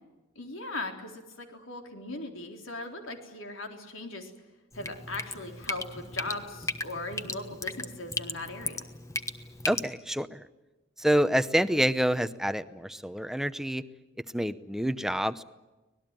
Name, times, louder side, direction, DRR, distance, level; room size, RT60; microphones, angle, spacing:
voice 1, 0.4-4.3 4.7-8.9, left 2 dB, 75° left, 3 dB, 3.9 m, -39 dB
Drip, 4.7-9.8, left 2 dB, 15° left, 1.2 m, -37 dB
voice 2, 9.7-10.4 11.0-13.8 14.3-15.4, equal, ahead, 12 dB, 0.8 m, -27 dB
25.0 x 19.5 x 9.1 m, 1.1 s
head